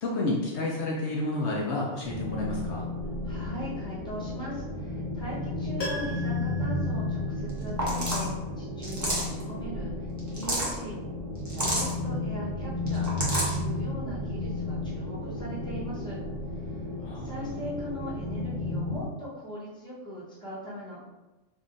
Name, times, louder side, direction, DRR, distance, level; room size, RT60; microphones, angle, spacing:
voice 1, 0.0-2.9 17.0-17.6, left 2 dB, 65° left, -3 dB, 0.7 m, -30 dB
sound 1, 2.0-19.0, left 2 dB, 75° right, 0.9 m, -33 dB
voice 2, 3.2-8.3 8.6-10.9 11.5-13.1 13.4-16.2 16.5-16.9 17.1-21.0, equal, 5° left, -8 dB, 0.8 m, -40 dB
Piano, 5.8-7.9 8.2-8.3, left 1 dB, 80° left, 1.3 m, -39 dB
sound 2, 7.5-7.6 7.8-8.3 8.8-9.4 10.2-10.7 11.5-11.9 12.9-13.5, right 1 dB, 25° right, 0.4 m, -29 dB
3.6 x 2.4 x 2.5 m, 1.1 s
omnidirectional pair, 1.4 m